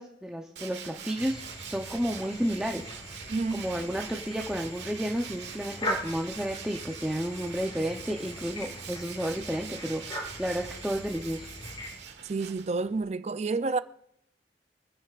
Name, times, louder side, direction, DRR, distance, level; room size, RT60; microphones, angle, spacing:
voice 1, 0.0-11.5, equal, 5° right, 0.7 m, -32 dB
Tools, 0.6-13.1, right 7 dB, 75° right, 1.5 m, -44 dB
sound 1, 1.2-12.0, equal, 30° left, 4.4 m, -41 dB
voice 2, 3.3-3.7 12.3-13.8, right 3 dB, 40° right, 0.4 m, -29 dB
27.5 x 10.0 x 2.5 m
head